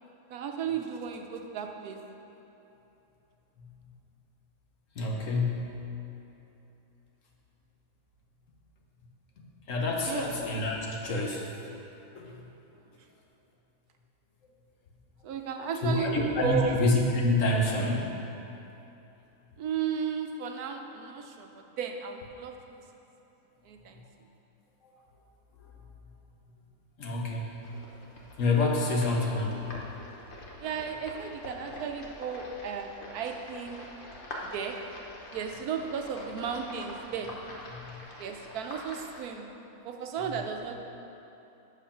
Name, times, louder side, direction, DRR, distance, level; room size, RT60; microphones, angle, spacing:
voice 1, 0.3-2.0 10.0-10.2 15.2-16.1 16.4-16.8 19.6-22.5 23.7-24.0 30.6-33.8 34.5-34.8 35.3-37.3 38.2-39.5 39.8-40.7, right 7 dB, 80° right, 4 dB, 1.2 m, -34 dB
voice 2, 5.0-5.7 9.7-11.4 12.1-12.3 15.8-18.1 27.0-27.6 28.4-29.5 37.7-38.0, left 2 dB, 60° left, 0 dB, 1.4 m, -27 dB
sound 1, 27.6-39.2, left 1 dB, 40° left, 1.1 m, -45 dB
8.3 x 6.4 x 5.7 m, 3.0 s
omnidirectional pair, 1.6 m